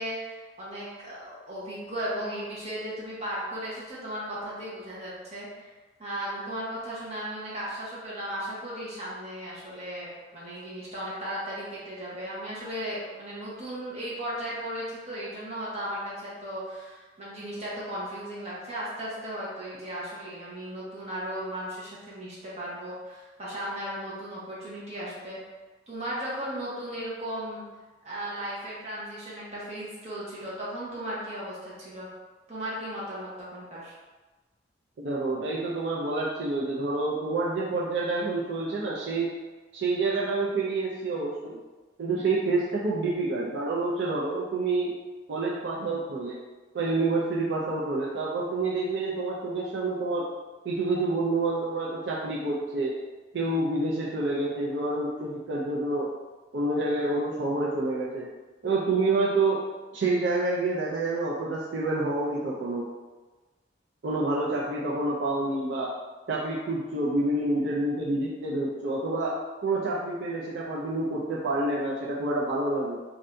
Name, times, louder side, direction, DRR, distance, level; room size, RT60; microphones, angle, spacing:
voice 1, 0.0-5.7 6.0-25.4 25.9-27.7 28.0-32.1 32.5-33.9, equal, 35° right, -7 dB, 1.0 m, -36 dB
voice 2, 35.0-39.3 39.7-41.6 42.0-44.9 45.3-46.4 46.7-50.2 50.6-53.0 53.3-56.1 56.5-58.3 58.6-59.6 59.9-62.9 64.0-65.9 66.3-69.3 69.6-73.0, right 2 dB, 75° right, -5 dB, 0.5 m, -28 dB
2.6 x 2.6 x 3.3 m, 1.2 s
head